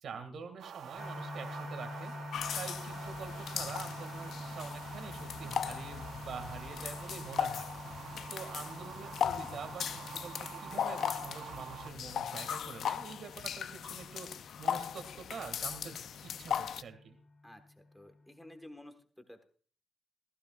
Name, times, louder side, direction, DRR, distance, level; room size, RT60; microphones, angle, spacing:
voice 1, 0.0-2.1 2.6-7.7 8.3-15.9 16.2-17.2, right 6 dB, 55° right, 8 dB, 1.9 m, -46 dB
sound 1, 0.6-11.9, right 8 dB, 75° right, 0.8 m, -47 dB
sound 2, 1.0-18.7, left 2 dB, 30° left, 2.5 m, -48 dB
sound 3, 2.3-16.8, left 8 dB, 65° left, 0.5 m, -38 dB
voice 2, 17.9-19.4, left 1 dB, 5° left, 6 dB, 1.4 m, -52 dB
15.0 x 15.0 x 2.4 m, 0.43 s
wide cardioid pair, 165°, 0 cm